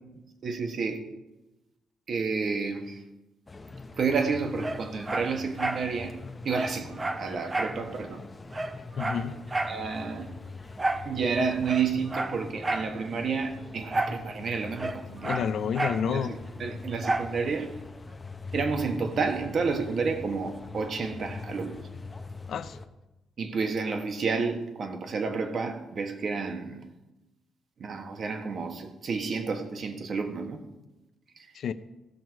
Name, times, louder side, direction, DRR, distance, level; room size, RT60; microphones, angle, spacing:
voice 1, 0.4-1.0 2.1-3.0 4.0-6.2 6.4-8.2 9.7-10.3 11.0-15.3 16.1-17.7 18.5-21.8 23.4-26.8 27.8-30.6, right 5 dB, 50° right, 1.4 m, -30 dB
sound 1, 3.5-22.9, left 3 dB, 20° left, 0.9 m, -43 dB
Dog, 4.6-5.9 6.2-6.3 6.5-7.8 8.1-8.2 8.5-9.8 10.8-11.1 11.6-12.9 13.9-14.2 14.5-16.1 17.0-17.4 17.8-17.9, right 2 dB, 25° right, 0.7 m, -31 dB
voice 2, 9.0-9.4 15.2-16.4 22.5-22.8 31.5-31.7, left 8 dB, 65° left, 0.6 m, -29 dB
16.0 x 6.1 x 4.7 m
cardioid pair, 90°, 0 cm